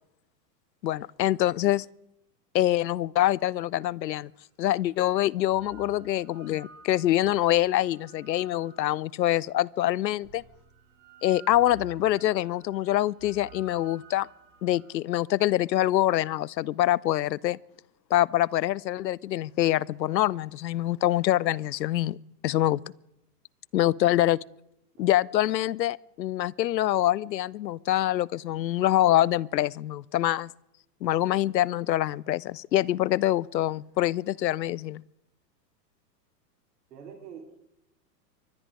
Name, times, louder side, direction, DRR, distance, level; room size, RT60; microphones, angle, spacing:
voice 1, 0.8-1.9 2.5-4.3 4.6-10.4 11.2-14.3 14.6-17.6 18.1-22.2 22.4-22.8 23.7-24.4 25.0-30.5 31.0-35.0, left 14 dB, 90° left, 0.6 m, -25 dB
sound 1, 4.2-4.3 5.2-9.5 10.2-14.9, right 6 dB, 55° right, 7.6 m, -52 dB
voice 2, 36.9-37.6, right 7 dB, 70° right, 3.9 m, -46 dB
24.5 x 10.5 x 5.0 m
hypercardioid pair, 115°, 49 cm